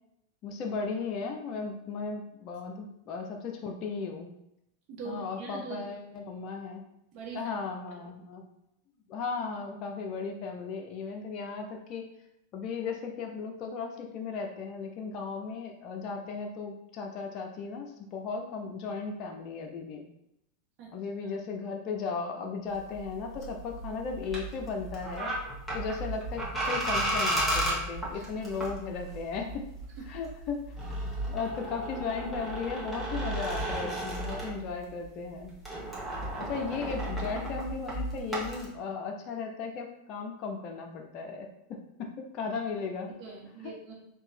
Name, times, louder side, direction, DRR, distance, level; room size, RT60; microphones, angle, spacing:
voice 1, 0.4-4.3 5.0-6.8 7.3-8.4 9.1-12.1 12.5-20.0 20.9-25.3 25.7-29.7 30.1-30.6 31.3-35.6 36.4-43.1 43.6-43.7, left 5 dB, 45° left, 2 dB, 0.6 m, -36 dB
voice 2, 4.9-6.2 7.1-7.5 20.8-20.9 21.2-21.3 28.1-28.3 30.0-30.1 43.2-43.9, right 4 dB, 50° right, -3 dB, 1.5 m, -42 dB
sound 1, 22.7-35.1 35.3-38.6, right 1 dB, ahead, 1.6 m, -34 dB
3.6 x 2.9 x 4.3 m, 0.82 s
hypercardioid pair, 105°, 0 cm